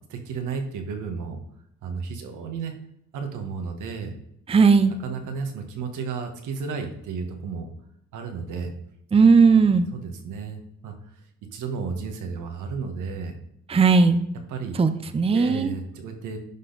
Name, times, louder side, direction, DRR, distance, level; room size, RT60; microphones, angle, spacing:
voice 1, 0.1-1.4 1.8-2.7 3.1-4.1 5.0-7.7 8.1-8.7 9.9-10.9 11.5-13.4 14.5-14.8 15.3-16.4, right 5 dB, 85° right, 4 dB, 1.4 m, -33 dB
voice 2, 4.5-4.9 9.1-9.9 13.7-14.2 14.8-15.8, right 5 dB, 20° right, 10 dB, 0.6 m, -17 dB
11.0 x 4.2 x 4.0 m, 0.75 s
cardioid pair, 90°, 30 cm